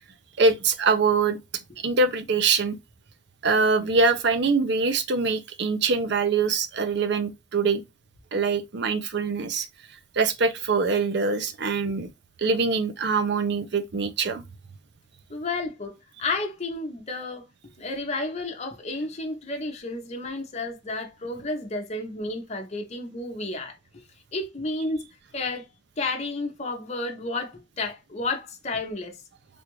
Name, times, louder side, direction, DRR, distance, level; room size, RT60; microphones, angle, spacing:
voice 1, 0.4-1.4 1.8-2.8 3.4-7.8 8.3-9.7 10.2-12.1 12.4-14.4, right 4 dB, 60° right, 0.6 m, -23 dB
voice 2, 15.3-15.9 16.2-17.5 17.8-23.8 24.3-25.1 25.3-25.7 26.0-29.2, left 2 dB, 35° left, 0.8 m, -31 dB
3.5 x 2.5 x 2.9 m
head